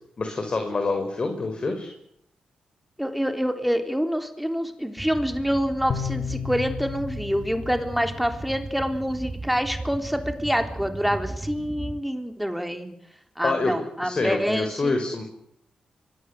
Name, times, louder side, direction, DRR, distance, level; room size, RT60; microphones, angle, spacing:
voice 1, 0.2-1.9 13.4-13.7 14.0-15.2, left 3 dB, 45° left, 5 dB, 5.1 m, -26 dB
voice 2, 3.0-12.9 13.4-15.0, equal, ahead, 6 dB, 3.6 m, -26 dB
sound 1, 5.0-12.0, right 2 dB, 20° right, 1.5 m, -36 dB
sound 2, 5.9-9.2, left 8 dB, 60° left, 2.1 m, -34 dB
25.5 x 22.0 x 8.2 m, 0.73 s
cardioid pair, 70°, 2 cm